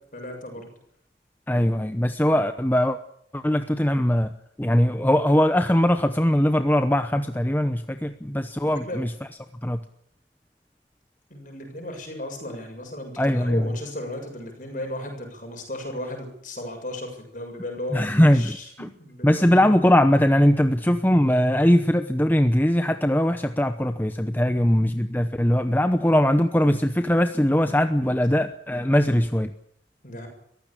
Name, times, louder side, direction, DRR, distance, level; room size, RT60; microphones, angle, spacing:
voice 1, 0.1-0.7 8.6-9.0 11.3-18.7 19.0-19.7 30.0-30.3, left 1 dB, 45° left, 3 dB, 7.2 m, -35 dB
voice 2, 1.5-3.0 3.3-4.3 4.6-9.1 9.6-9.8 13.2-13.8 17.9-18.5 18.8-18.9 19.2-29.5, equal, 10° left, 8 dB, 0.8 m, -21 dB
22.5 x 15.5 x 8.8 m, 0.70 s
head